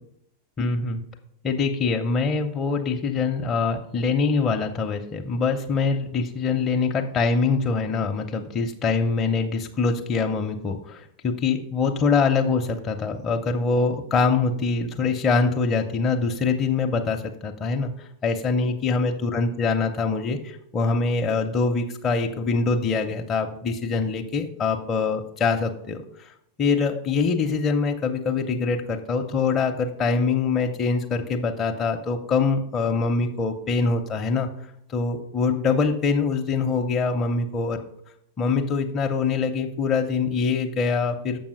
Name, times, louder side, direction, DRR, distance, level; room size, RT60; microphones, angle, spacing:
voice 1, 0.6-1.0 1.4-26.3 26.6-34.5 34.9-37.8 38.4-41.4, left 4 dB, 25° left, 3 dB, 0.6 m, -24 dB
7.2 x 5.4 x 5.3 m, 0.72 s
figure-of-eight pair, 90°, 0 cm